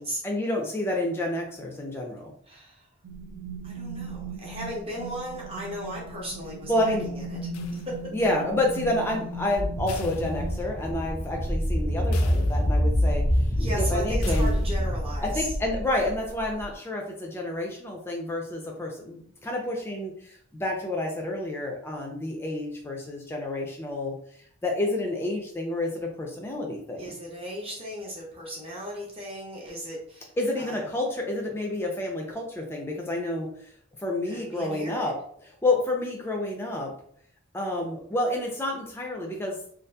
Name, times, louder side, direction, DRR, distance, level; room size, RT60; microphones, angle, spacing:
voice 1, 0.2-2.3 6.7-7.1 8.1-13.2 13.8-14.5 15.2-24.2 24.6-27.2 30.4-33.5 34.0-35.1 35.6-36.9 37.5-39.6, left 1 dB, 10° left, 0 dB, 0.4 m, -29 dB
voice 2, 2.5-2.9 3.6-7.8 13.6-15.5 26.9-30.8 34.3-35.1, equal, 25° right, -3 dB, 0.7 m, -36 dB
sound 1, 3.0-10.6, right 1 dB, 75° right, 0.5 m, -38 dB
sound 2, 7.5-8.4 9.9-11.0 11.4-11.5 12.1-13.0 14.2-15.0, left 6 dB, 85° left, 0.4 m, -46 dB
sound 3, 9.5-16.6, equal, 50° right, 0.9 m, -26 dB
2.7 x 2.4 x 2.2 m, 0.62 s
head